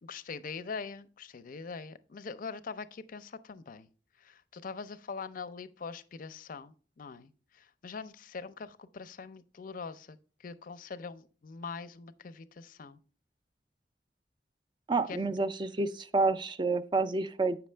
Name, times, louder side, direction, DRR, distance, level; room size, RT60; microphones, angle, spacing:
voice 1, 0.0-3.9 4.2-13.0 15.1-15.3, left 5 dB, 50° left, 0.5 m, -43 dB
voice 2, 14.9-17.7, right 3 dB, 25° right, 0.4 m, -29 dB
8.3 x 5.9 x 3.3 m
head